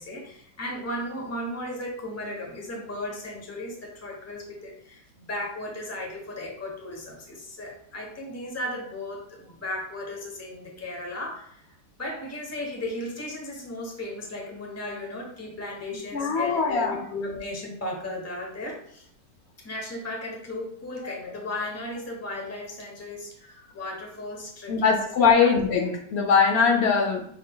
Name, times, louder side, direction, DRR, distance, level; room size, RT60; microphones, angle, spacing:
voice 1, 0.0-11.7 12.0-19.1 19.6-25.1 25.4-25.6, left 1 dB, 15° left, 0 dB, 0.6 m, -35 dB
voice 2, 16.1-17.1 24.7-27.2, left 5 dB, 85° left, 2 dB, 0.5 m, -21 dB
6.2 x 3.8 x 2.3 m, 0.68 s
omnidirectional pair, 1.8 m